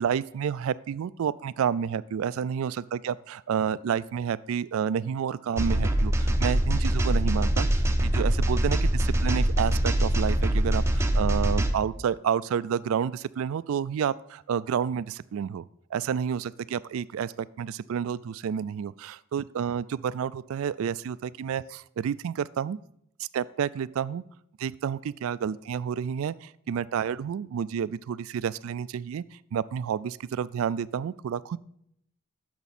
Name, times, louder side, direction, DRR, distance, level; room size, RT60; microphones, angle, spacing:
voice 1, 0.0-15.7 15.9-22.8 23.2-24.2 24.6-29.2 29.5-31.6, right 7 dB, 70° right, 19 dB, 0.3 m, -30 dB
sound 1, 5.6-11.7, right 1 dB, 10° right, 0.5 m, -24 dB
10.5 x 7.0 x 4.2 m, 0.73 s
head